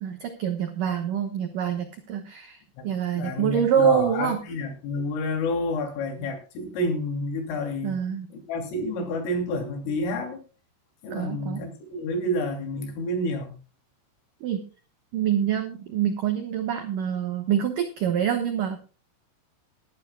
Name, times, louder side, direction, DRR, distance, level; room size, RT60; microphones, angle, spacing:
voice 1, 0.0-2.6 2.8-4.4 7.8-8.3 11.1-11.6 14.4-14.6 15.1-18.8, right 8 dB, 80° right, 1.9 m, -26 dB
voice 2, 3.1-8.0 8.3-10.4 11.0-13.6, left 1 dB, 85° left, 5.4 m, -29 dB
21.0 x 12.0 x 2.2 m
omnidirectional pair, 5.6 m